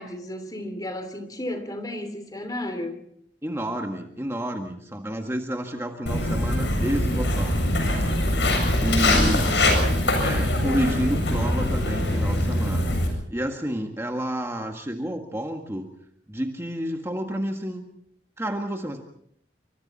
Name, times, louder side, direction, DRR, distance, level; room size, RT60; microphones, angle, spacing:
voice 1, 0.0-3.0 8.8-10.0, left 1 dB, 20° left, 2.9 m, -33 dB
voice 2, 3.4-8.2 8.8-9.4 10.2-15.9 16.3-17.8 18.4-19.0, equal, 15° right, 1.7 m, -30 dB
Walk footsteps, 6.1-13.1, left 1 dB, 80° left, 7.3 m, -23 dB
28.5 x 25.5 x 4.2 m
head